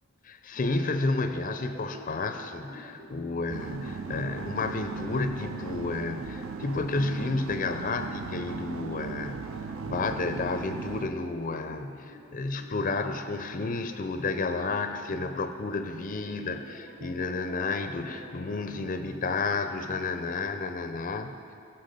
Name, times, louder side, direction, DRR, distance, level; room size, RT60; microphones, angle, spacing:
voice 1, 0.2-9.5 9.8-21.3, left 3 dB, 40° left, 8 dB, 0.4 m, -31 dB
sound 1, 0.5-19.5, equal, 40° right, 1.2 m, -50 dB
sound 2, 3.5-11.1, right 4 dB, 70° right, 0.5 m, -37 dB
14.5 x 5.7 x 5.2 m, 2.4 s
head